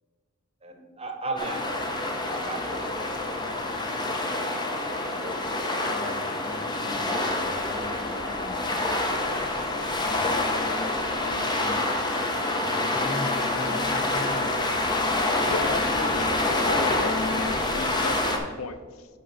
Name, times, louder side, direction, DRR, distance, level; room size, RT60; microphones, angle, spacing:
voice 1, 0.6-4.3 5.1-5.5, right 2 dB, 30° right, 1.1 m, -38 dB
sound 1, 1.4-18.4, left 2 dB, 20° left, 0.9 m, -27 dB
voice 2, 5.8-8.9 9.9-10.4 11.2-11.9 12.1-14.7, left 1 dB, 45° left, 1.7 m, -40 dB
voice 3, 15.5-19.1, left 3 dB, 80° left, 0.6 m, -35 dB
10.0 x 3.8 x 5.2 m
head